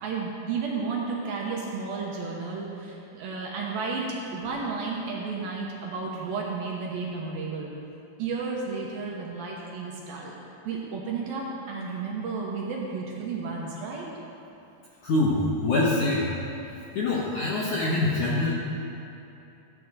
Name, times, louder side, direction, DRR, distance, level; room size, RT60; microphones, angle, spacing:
voice 1, 0.0-4.1 4.3-7.7 8.2-10.3 10.6-14.1, right 4 dB, 70° right, -3 dB, 2.5 m, -32 dB
voice 2, 15.0-16.3 17.0-18.5, left 2 dB, 70° left, -5 dB, 1.9 m, -24 dB
14.5 x 9.9 x 4.2 m, 2.8 s
omnidirectional pair, 5.0 m